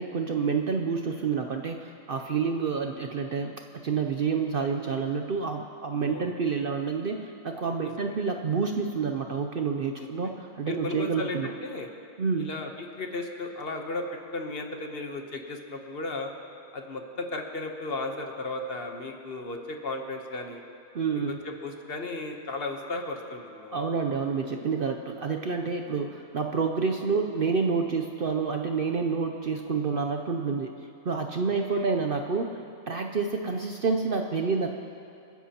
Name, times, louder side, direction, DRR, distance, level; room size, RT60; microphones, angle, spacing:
voice 1, 0.0-3.5 3.8-11.5 12.2-12.5 20.9-21.4 23.7-30.7 31.0-32.6 32.9-34.7, right 5 dB, 55° right, 4 dB, 0.7 m, -28 dB
voice 2, 6.0-6.7 7.8-8.1 10.0-10.3 10.7-11.9 12.4-14.0 14.3-16.3 16.7-20.6 21.4-23.8 31.4-31.9, left 2 dB, 50° left, 3 dB, 1.1 m, -35 dB
28.5 x 10.5 x 2.9 m, 2.6 s
omnidirectional pair, 1.4 m